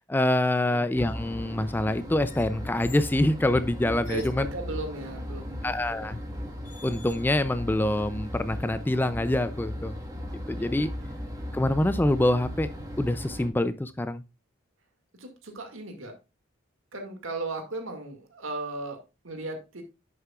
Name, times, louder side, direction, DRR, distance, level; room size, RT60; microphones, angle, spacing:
voice 1, 0.1-4.5 5.6-6.2 6.8-10.0 10.5-10.9 11.5-12.7 13.0-14.2, left 1 dB, 10° left, 13 dB, 0.3 m, -25 dB
sound 1, 0.9-13.5, equal, 15° right, 1.4 m, -37 dB
sound 2, 2.2-3.2 3.8-4.4 5.8-5.9 6.6-7.5 7.9-8.8, left 8 dB, 40° left, 1.0 m, -51 dB
voice 2, 4.1-5.7 10.5-11.1 15.2-16.2 16.9-19.8, right 2 dB, 75° right, 5 dB, 2.0 m, -36 dB
10.5 x 6.6 x 2.3 m, 0.26 s
head